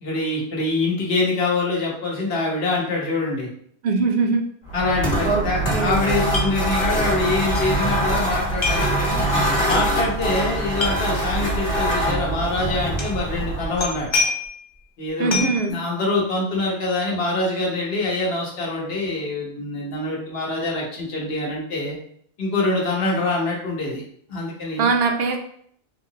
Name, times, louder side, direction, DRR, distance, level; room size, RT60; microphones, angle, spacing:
voice 1, 0.0-3.5 4.7-9.2 9.7-14.3 15.0-22.0 22.4-24.0 24.3-24.9, left 2 dB, 75° left, -2 dB, 1.2 m, -25 dB
voice 2, 3.8-4.4 5.2-6.0 15.2-15.8 24.8-25.4, right 4 dB, 70° right, 4 dB, 0.8 m, -22 dB
sound 1, 4.7-14.0, right 1 dB, 55° left, 1.3 m, -23 dB
sound 2, 6.3-6.5 6.8-6.9 7.5-7.7 8.6-8.9 9.7-9.8 10.7-10.9 11.9-12.0 13.0-13.2 13.8-14.6 15.3-15.6, left 3 dB, 35° left, 0.5 m, -25 dB
3.7 x 2.8 x 2.7 m, 0.63 s
omnidirectional pair, 1.0 m